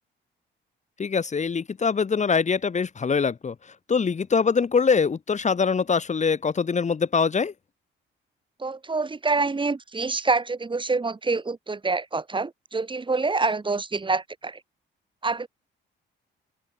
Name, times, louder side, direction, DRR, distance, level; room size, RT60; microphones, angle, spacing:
voice 1, 1.0-7.5, left 5 dB, 35° left, 2.3 m, -23 dB
voice 2, 8.6-14.6 15.2-15.5, right 3 dB, 25° right, 2.9 m, -26 dB
cardioid pair, 90°, 20 cm